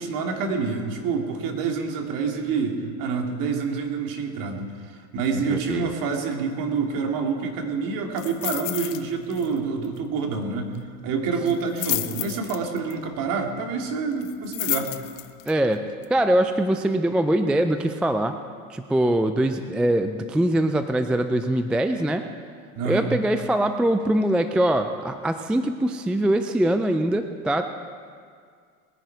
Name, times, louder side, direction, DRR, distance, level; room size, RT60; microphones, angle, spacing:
voice 1, 0.0-10.8 11.0-14.9 22.8-23.1, right 5 dB, 50° right, 3 dB, 2.4 m, -27 dB
voice 2, 5.5-5.9 15.5-15.8 16.1-18.4 18.7-22.2 22.8-27.6, right 1 dB, 5° right, 8 dB, 0.3 m, -22 dB
sound 1, 8.2-9.0 9.3-9.6 9.8-9.9 11.5-12.9 14.2-15.5 16.0-16.1, left 17 dB, 50° left, 1.0 m, -30 dB
20.5 x 10.5 x 4.6 m, 2.1 s
hypercardioid pair, 105°, 42 cm